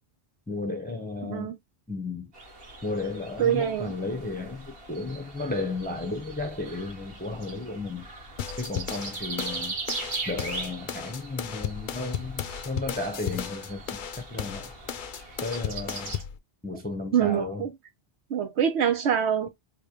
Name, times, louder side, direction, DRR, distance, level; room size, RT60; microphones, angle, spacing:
voice 1, 0.5-1.6 1.9-2.3 2.8-8.1 8.6-9.7 10.3-14.7 15.4-16.2 16.6-17.7 19.4-19.5, left 3 dB, 10° left, 0.5 m, -34 dB
voice 2, 1.2-1.6 3.4-3.9 17.1-17.7 18.3-19.5, right 8 dB, 85° right, 1.0 m, -25 dB
sound 1, 2.3-16.2, right 3 dB, 60° right, 1.5 m, -40 dB
sound 2, 8.4-16.4, left 9 dB, 60° left, 0.6 m, -35 dB
4.7 x 2.3 x 2.8 m
omnidirectional pair, 1.1 m